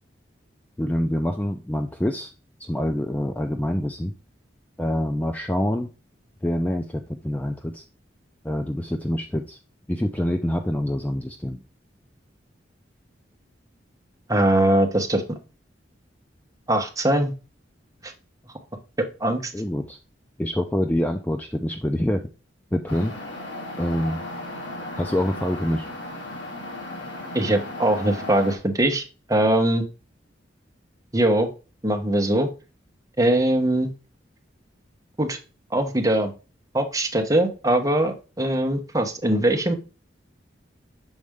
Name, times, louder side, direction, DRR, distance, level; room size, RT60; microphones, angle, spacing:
voice 1, 0.8-2.3 2.6-4.1 4.8-5.9 6.4-7.8 8.4-9.6 9.9-11.6 19.5-20.0 20.4-22.2 22.7-23.1 23.8-24.2 25.0-25.9, left 1 dB, 10° left, 5 dB, 0.4 m, -26 dB
voice 2, 14.3-15.2 16.7-17.3 18.0-18.1 19.2-19.5 27.3-29.0 29.3-29.8 31.1-31.5 31.8-32.5 33.2-33.9 35.2-35.4 35.7-36.3 36.7-39.7, right 1 dB, 20° right, 4 dB, 1.0 m, -21 dB
sound 1, 22.9-28.6, left 2 dB, 80° left, 1.6 m, -35 dB
6.5 x 4.3 x 3.5 m, 0.32 s
head